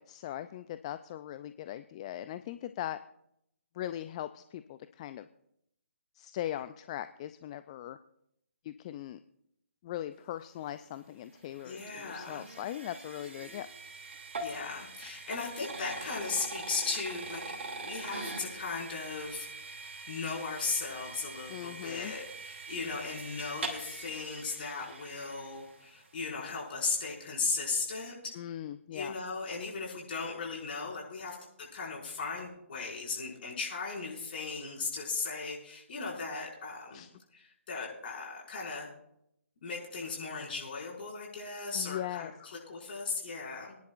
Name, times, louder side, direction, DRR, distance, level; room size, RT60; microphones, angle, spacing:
voice 1, 0.0-3.0 3.7-5.3 6.2-8.0 8.6-9.2 9.8-13.7 21.5-22.1 28.3-29.1 36.9-37.1 41.7-42.3, left 12 dB, 30° left, 11 dB, 0.4 m, -40 dB
sound 1, 10.9-26.1, right 3 dB, 60° right, 2.7 m, -43 dB
voice 2, 11.6-12.5 14.4-17.4 17.8-28.1 28.9-31.4 31.7-37.1 37.3-38.9 39.6-43.8, left 4 dB, 50° left, -3 dB, 5.5 m, -37 dB
26.0 x 10.5 x 2.5 m, 0.77 s
figure-of-eight pair, 140°, 7 cm